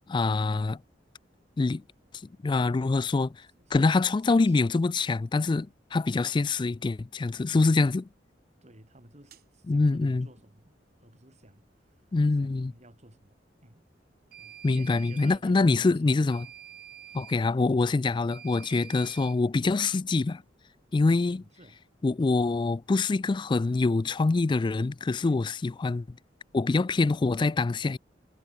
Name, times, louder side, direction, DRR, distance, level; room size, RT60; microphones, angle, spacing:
voice 1, 0.1-0.8 1.6-1.8 2.4-3.3 3.7-8.0 9.7-10.3 12.1-12.7 14.6-16.5 17.1-20.4 20.9-21.4 22.0-26.2 26.5-28.0, left 3 dB, 25° left, 0.3 m, -25 dB
voice 2, 3.2-3.8 4.2-4.8 6.2-6.5 7.4-7.8 8.6-10.8 11.0-11.9 12.3-13.9 14.3-16.5 17.1-17.6 21.2-21.8 25.2-25.5, right 1 dB, 40° right, 5.4 m, -54 dB
sound 1, 9.3-9.4 14.3-15.4 16.3-17.4 18.3-19.4, right 11 dB, 60° right, 5.7 m, -47 dB
head